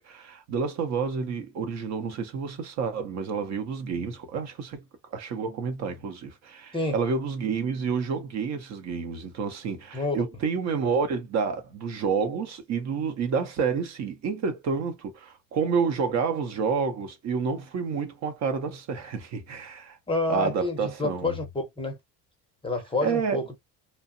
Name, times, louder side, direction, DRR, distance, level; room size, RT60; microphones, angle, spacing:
voice 1, 0.0-4.8 5.1-20.0 20.3-21.3 23.0-23.4, right 5 dB, 45° right, 0.7 m, -29 dB
voice 2, 9.9-10.3 20.1-22.0 22.6-23.6, left 2 dB, 15° left, 0.6 m, -28 dB
2.8 x 2.1 x 2.5 m
cardioid pair, 150°, 37 cm